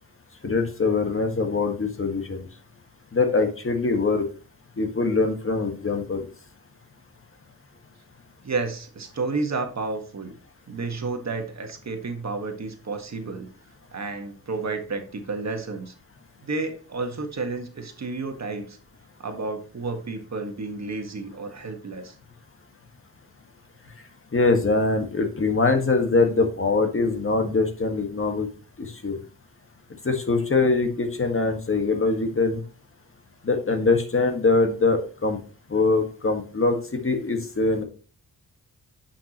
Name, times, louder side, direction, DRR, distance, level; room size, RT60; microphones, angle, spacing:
voice 1, 0.4-2.5 3.1-4.2 4.8-6.3 24.3-28.5 28.8-29.2 30.0-32.6 33.4-35.4 35.7-37.8, left 3 dB, 35° left, 5 dB, 1.7 m, -23 dB
voice 2, 8.4-10.3 10.7-13.5 13.9-15.9 16.4-18.8 19.2-22.2, right 3 dB, 45° right, 5 dB, 1.6 m, -31 dB
9.5 x 5.9 x 3.0 m, 0.38 s
cardioid pair, 75°, 36 cm